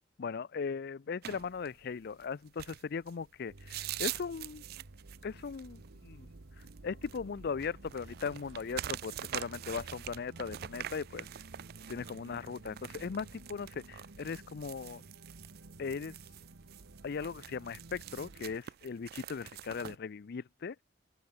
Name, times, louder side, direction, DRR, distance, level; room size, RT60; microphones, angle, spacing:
voice 1, 0.2-4.6 5.2-6.3 6.8-11.3 11.9-15.0 15.8-16.2 17.0-20.8, left 5 dB, 55° left, 0.4 m, -38 dB
roll-a-cigarette-variations-licking, 1.2-20.0, right 12 dB, 55° right, 0.4 m, -45 dB
sound 1, 3.5-18.6, right 2 dB, 75° right, 1.1 m, -53 dB
open air
head